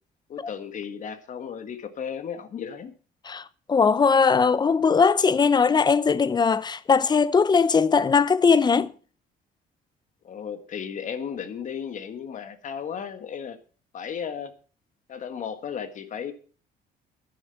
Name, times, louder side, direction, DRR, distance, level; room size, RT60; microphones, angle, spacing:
voice 1, 0.3-2.9 10.2-13.6 13.9-14.5 15.1-16.3, left 7 dB, 50° left, 1.7 m, -34 dB
voice 2, 3.2-8.9, left 5 dB, 25° left, 0.6 m, -20 dB
10.5 x 10.0 x 5.7 m
cardioid pair, 110°, 17 cm